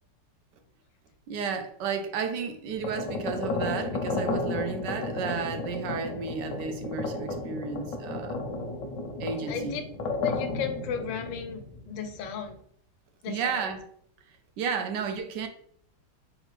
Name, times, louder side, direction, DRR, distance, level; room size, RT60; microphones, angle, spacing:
voice 1, 1.3-8.4 9.2-9.8 13.3-13.8 14.3-15.5, right 6 dB, 75° right, 6 dB, 1.2 m, -33 dB
sound 1, 2.7-12.5, left 2 dB, 65° left, 0.9 m, -33 dB
voice 2, 9.5-9.8 10.1-12.6 13.2-13.7, left 7 dB, 90° left, 7 dB, 1.3 m, -34 dB
3.5 x 3.4 x 3.2 m, 0.65 s
omnidirectional pair, 2.0 m